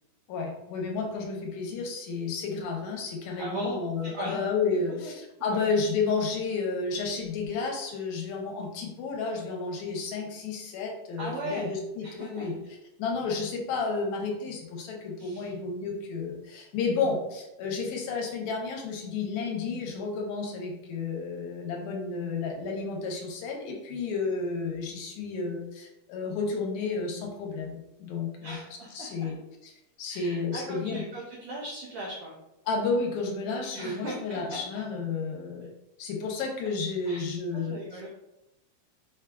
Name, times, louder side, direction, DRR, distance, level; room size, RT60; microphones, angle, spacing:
voice 1, 0.3-12.5 13.0-28.6 28.9-29.4 30.0-31.0 32.7-35.7 36.0-37.8, left 4 dB, 80° left, 1 dB, 1.9 m, -31 dB
voice 2, 3.4-3.8 4.0-4.4 5.0-5.1 5.5-5.7 11.2-11.7 12.0-12.7 15.2-15.5 28.4-29.3 30.1-32.3 33.7-34.6 37.1-37.2 37.5-38.1, right 1 dB, 85° right, -4 dB, 1.3 m, -38 dB
5.2 x 2.3 x 2.2 m, 0.91 s
omnidirectional pair, 3.3 m